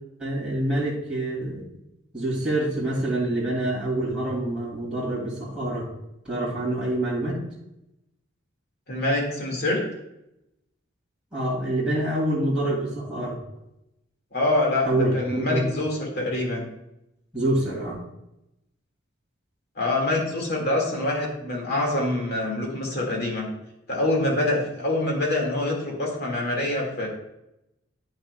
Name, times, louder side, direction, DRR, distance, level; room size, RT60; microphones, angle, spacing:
voice 1, 0.2-1.6 2.1-5.9 6.2-7.4 11.3-13.4 14.9-15.7 17.3-18.0, right 1 dB, 5° right, -6 dB, 2.6 m, -26 dB
voice 2, 8.9-9.8 14.3-16.6 19.8-23.5 23.9-27.1, left 1 dB, 50° left, -1 dB, 2.1 m, -25 dB
9.6 x 6.3 x 2.3 m, 0.86 s
head